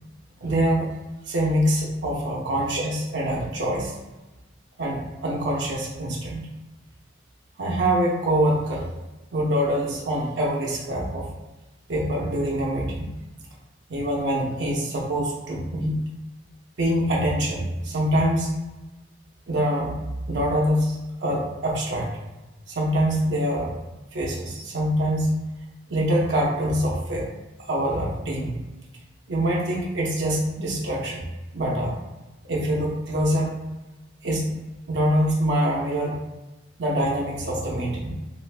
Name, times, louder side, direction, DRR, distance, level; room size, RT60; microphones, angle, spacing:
voice 1, 0.4-0.9 1.3-3.9 4.8-6.5 7.6-8.9 9.3-11.3 11.9-13.1 13.9-16.0 16.8-18.5 19.5-20.0 20.3-22.1 22.7-23.7 24.1-25.4 25.9-27.3 27.7-28.6 29.3-31.3 31.5-31.9 32.5-33.6 34.2-34.5 34.9-36.2 36.8-38.2, equal, 75° right, -3 dB, 0.5 m, -24 dB
3.2 x 2.4 x 2.4 m, 1.1 s
head